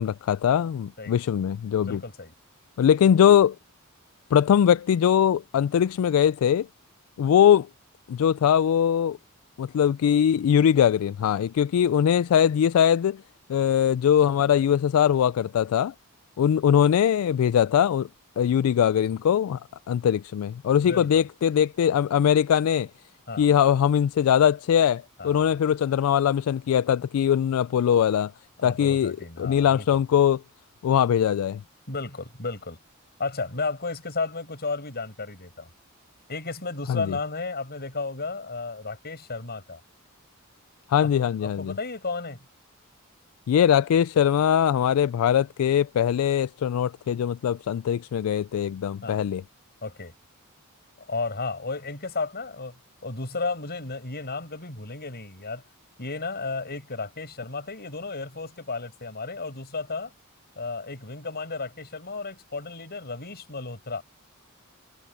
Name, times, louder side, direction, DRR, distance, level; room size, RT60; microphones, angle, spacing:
voice 1, 0.0-2.0 2.8-3.6 4.3-6.7 7.2-7.7 8.1-9.2 9.6-13.2 13.5-15.9 16.4-18.1 18.4-19.6 19.9-22.9 23.4-28.3 28.6-30.4 30.8-31.6 36.9-37.2 40.9-41.7 43.5-49.4, left 9 dB, 70° left, 0.3 m, -21 dB
voice 2, 1.8-2.3 20.8-21.2 23.3-23.5 25.2-25.6 28.6-30.0 31.9-32.8 33.2-35.7 36.3-39.8 41.2-42.4 49.0-49.2 49.8-50.1 51.0-55.6 56.0-60.1 60.6-64.0, left 3 dB, 45° left, 7.3 m, -33 dB
head